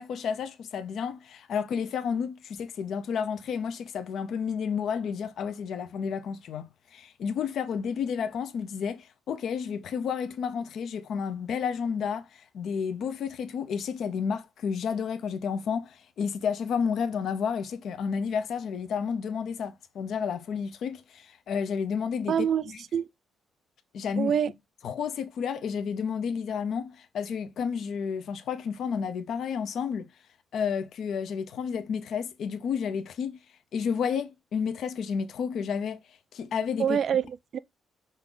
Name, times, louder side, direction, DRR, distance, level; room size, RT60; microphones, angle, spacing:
voice 1, 0.0-22.5 23.9-24.3 24.8-30.1 30.5-33.4 33.7-36.0 36.3-37.0, left 6 dB, 70° left, 0.6 m, -31 dB
voice 2, 22.3-23.1 24.2-24.5 36.8-37.6, right 8 dB, 60° right, 0.3 m, -26 dB
5.4 x 2.5 x 3.7 m
cardioid pair, 90°, 0 cm